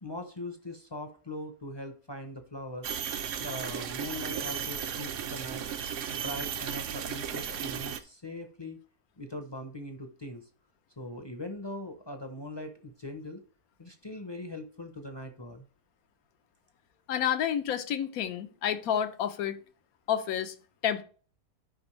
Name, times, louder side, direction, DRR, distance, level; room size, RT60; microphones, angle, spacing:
voice 1, 0.0-2.9 3.4-5.7 6.1-8.8 9.2-10.5 11.0-13.4 13.8-15.7, left 1 dB, 25° left, 0.5 m, -41 dB
sound 1, 2.8-8.0, right 8 dB, 65° right, 0.9 m, -35 dB
voice 2, 17.1-19.6 20.1-20.5 20.8-21.0, left 9 dB, 80° left, 1.2 m, -29 dB
11.5 x 5.2 x 3.2 m
omnidirectional pair, 1.5 m